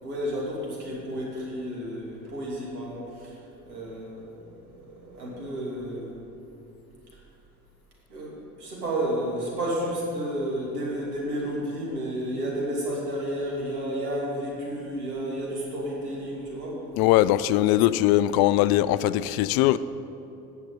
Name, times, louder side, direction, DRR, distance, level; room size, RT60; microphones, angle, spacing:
voice 1, 0.0-3.4 3.7-6.2 8.1-16.8 17.7-17.8, right 1 dB, 85° right, -4 dB, 2.8 m, -31 dB
voice 2, 17.0-19.8, left 14 dB, 55° left, 16 dB, 0.5 m, -21 dB
8.7 x 6.7 x 8.5 m, 2.9 s
hypercardioid pair, 65°, 44 cm